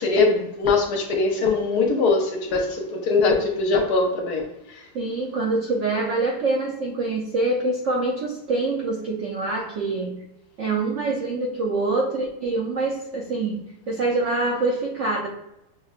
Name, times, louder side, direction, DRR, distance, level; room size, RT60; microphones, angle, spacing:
voice 1, 0.0-4.8, left 3 dB, 70° left, 2 dB, 1.1 m, -22 dB
voice 2, 4.9-10.2 10.6-15.3, right 3 dB, 75° right, -2 dB, 0.7 m, -25 dB
6.1 x 2.1 x 2.3 m, 0.88 s
omnidirectional pair, 1.9 m